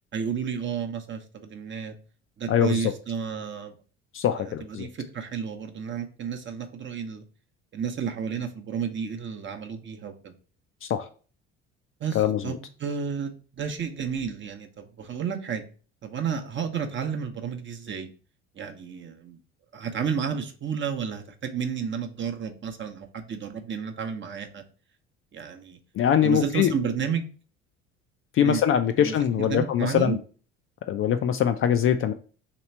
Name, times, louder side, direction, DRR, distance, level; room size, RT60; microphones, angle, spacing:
voice 1, 0.1-1.9 2.4-3.7 4.3-7.2 7.7-10.3 12.0-15.6 16.0-18.1 18.6-19.4 19.7-24.6 25.3-25.8 26.2-27.3 28.4-28.6 29.0-30.2, right 7 dB, 35° right, 5 dB, 0.8 m, -32 dB
voice 2, 2.5-2.9 4.1-4.9 10.8-11.1 12.1-12.6 25.9-26.7 28.3-30.2 30.9-32.1, left 9 dB, 40° left, 8 dB, 0.4 m, -23 dB
3.2 x 3.0 x 4.3 m, 0.39 s
hypercardioid pair, 65°, 35 cm